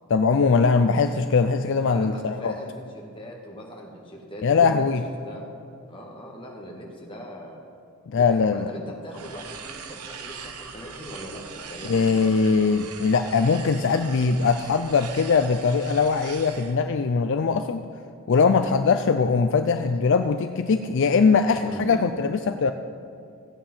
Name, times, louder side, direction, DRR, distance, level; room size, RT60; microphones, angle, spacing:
voice 1, 0.1-2.5 4.4-5.0 8.1-8.7 11.9-17.8 18.3-22.7, left 5 dB, 55° left, 8 dB, 0.4 m, -21 dB
voice 2, 1.9-5.5 5.9-7.6 8.1-12.2 21.6-22.1, equal, 25° left, -1 dB, 1.9 m, -40 dB
sound 1, 9.1-16.8, right 6 dB, 85° right, 1.1 m, -41 dB
15.5 x 8.9 x 5.6 m, 2.6 s
head